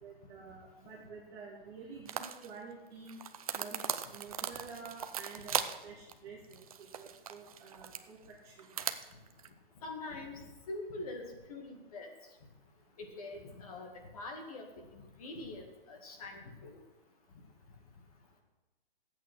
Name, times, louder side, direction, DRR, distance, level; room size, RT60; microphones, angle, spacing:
voice 1, 0.0-3.2 3.5-8.2 8.4-8.7, right 4 dB, 10° right, -3 dB, 0.9 m, -49 dB
sound 1, 2.0-2.5 3.1-5.8 6.1-6.2 6.5-8.0 8.6-9.5, right 8 dB, 40° right, 0.6 m, -38 dB
voice 2, 9.8-12.1 13.0-14.7 14.9-16.8, left 2 dB, 40° left, 3 dB, 2.0 m, -44 dB
13.0 x 8.6 x 6.1 m, 1.1 s
hypercardioid pair, 170°, 29 cm